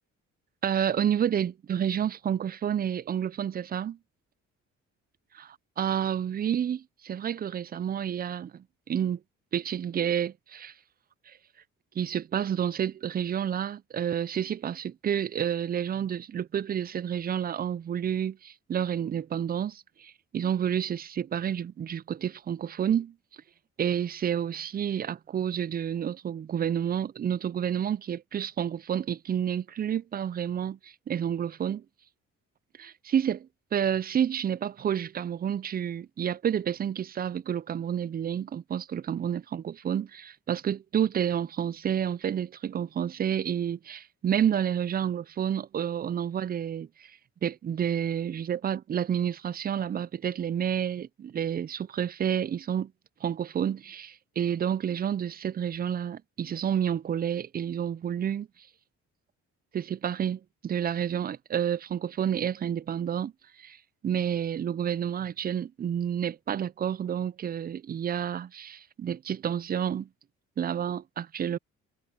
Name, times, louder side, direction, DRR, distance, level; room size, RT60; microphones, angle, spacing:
voice 1, 0.6-4.0 5.3-9.2 9.5-10.7 11.3-11.4 12.0-23.1 23.8-31.8 32.8-47.1 47.4-52.9 53.2-58.5 59.7-63.3 63.6-63.8 64.0-70.1 70.6-71.6, right 9 dB, 30° right, 0.4 m, -30 dB
cardioid pair, 90°, 30 cm